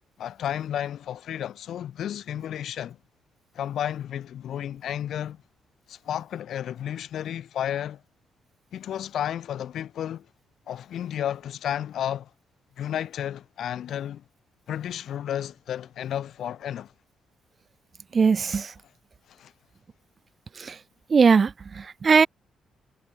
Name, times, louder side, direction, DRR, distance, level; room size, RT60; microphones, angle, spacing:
voice 1, 0.2-3.0 3.5-5.4 5.9-8.0 8.7-10.3 10.7-12.3 12.8-14.2 14.7-16.9 19.3-19.5, left 10 dB, 75° left, 2.1 m, -32 dB
voice 2, 18.1-18.7 20.5-20.8 21.1-22.3, right 5 dB, 45° right, 1.2 m, -20 dB
cardioid pair, 65°, 0 cm